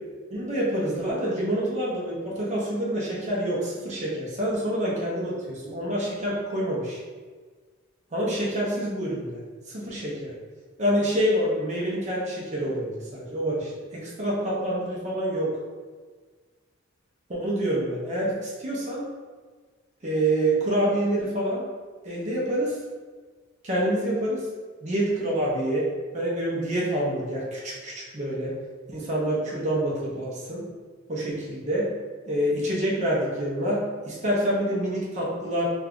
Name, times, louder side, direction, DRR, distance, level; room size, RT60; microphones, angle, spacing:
voice 1, 0.3-7.0 8.1-9.4 9.7-10.3 10.8-15.5 17.3-19.1 20.0-21.6 22.0-22.8 23.6-24.4 24.8-25.9 26.1-28.5 28.9-30.6 31.1-31.9 32.3-35.7, right 1 dB, 35° right, -5 dB, 0.7 m, -27 dB
2.6 x 2.3 x 3.6 m, 1.5 s
head